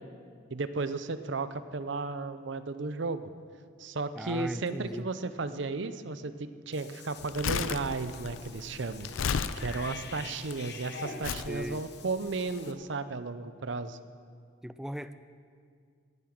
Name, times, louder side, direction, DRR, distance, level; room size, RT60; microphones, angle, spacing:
voice 1, 0.5-3.3 3.8-9.1 9.6-14.0, right 3 dB, 65° right, 12 dB, 0.6 m, -34 dB
voice 2, 4.2-5.1 11.5-11.8 14.6-15.1, equal, 5° right, 12 dB, 0.3 m, -37 dB
Cat / Bathtub (filling or washing), 6.7-12.7, left 5 dB, 55° left, 1.0 m, -46 dB
Crumpling crinkling, 7.2-10.5 11.2-11.5 12.3-12.4, left 6 dB, 80° left, 0.5 m, -33 dB
18.0 x 8.7 x 6.1 m, 2.2 s
head